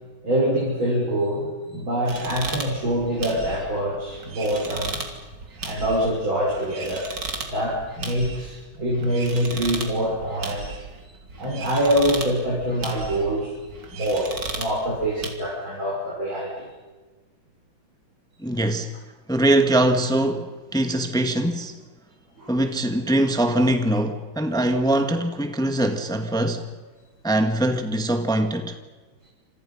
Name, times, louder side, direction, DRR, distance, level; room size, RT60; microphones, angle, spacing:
voice 1, 0.2-5.0 5.6-10.7 11.4-13.6 13.9-16.7 22.4-22.5, equal, 75° right, 7.0 m, -25 dB
sound 1, 2.1-15.3, right 3 dB, 60° right, 3.4 m, -36 dB
voice 2, 18.4-18.9 19.3-21.8 22.5-26.7 27.2-28.8, right 1 dB, ahead, 1.5 m, -22 dB
29.5 x 27.0 x 5.7 m
omnidirectional pair, 2.2 m